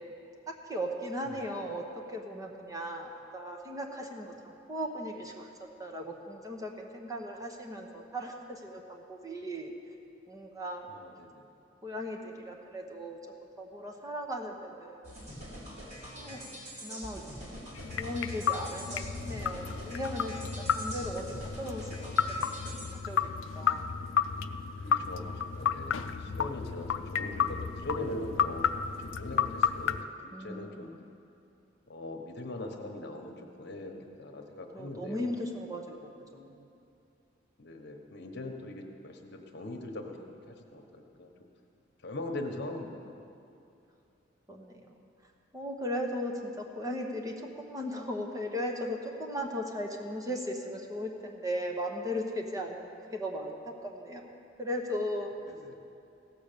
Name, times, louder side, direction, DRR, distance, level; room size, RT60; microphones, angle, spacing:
voice 1, 0.5-5.5 5.8-9.7 10.3-10.9 11.8-13.2 13.6-15.2 16.1-16.4 16.8-17.2 18.0-23.9 30.3-30.9 34.7-36.7 44.5-44.8 45.5-55.3, equal, 20° right, 1 dB, 1.0 m, -37 dB
voice 2, 10.9-11.5 16.2-16.6 24.8-28.7 29.0-30.9 31.9-35.3 37.6-40.2 40.5-41.3 42.0-43.2 55.5-55.7, left 1 dB, 60° left, 3 dB, 1.1 m, -41 dB
sound 1, 15.0-22.9, equal, 40° right, 2.5 m, -44 dB
sound 2, 17.7-30.0, left 7 dB, 90° left, 0.4 m, -32 dB
16.0 x 6.8 x 6.8 m, 2.7 s
head